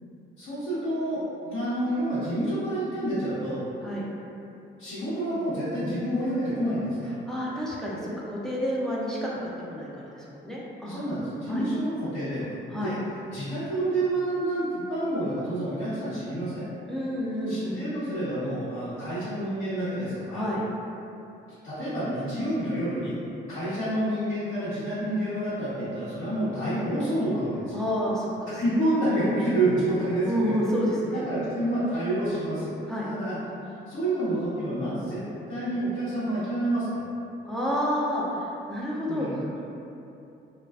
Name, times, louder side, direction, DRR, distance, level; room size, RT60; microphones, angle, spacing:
voice 1, 0.4-3.6 4.8-7.1 10.8-13.0 13.3-16.6 17.5-20.4 21.6-23.1 23.5-27.7 28.6-30.5 31.1-32.7 33.0-33.4 33.9-35.2 35.5-37.0 39.1-39.6, right 1 dB, 75° left, -17 dB, 1.2 m, -28 dB
voice 2, 7.3-11.0 11.5-11.6 12.7-12.9 16.9-17.8 20.3-20.6 27.7-28.6 30.2-31.2 32.9-33.1 37.4-39.4, equal, 5° left, -7 dB, 0.5 m, -29 dB
2.4 x 2.2 x 2.3 m, 2.8 s
cardioid pair, 90°, 20 cm